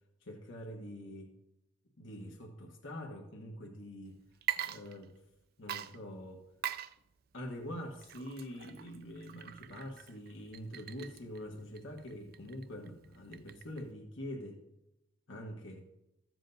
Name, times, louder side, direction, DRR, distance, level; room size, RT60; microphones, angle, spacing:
voice 1, 0.2-1.3 2.0-4.2 4.7-5.1 5.6-6.4 7.3-14.6 15.3-15.9, equal, 75° left, 0 dB, 1.2 m, -45 dB
Water / Liquid, 4.3-5.4 5.7-13.9, right 11 dB, 50° right, 0.3 m, -43 dB
14.5 x 7.5 x 2.7 m, 0.88 s
head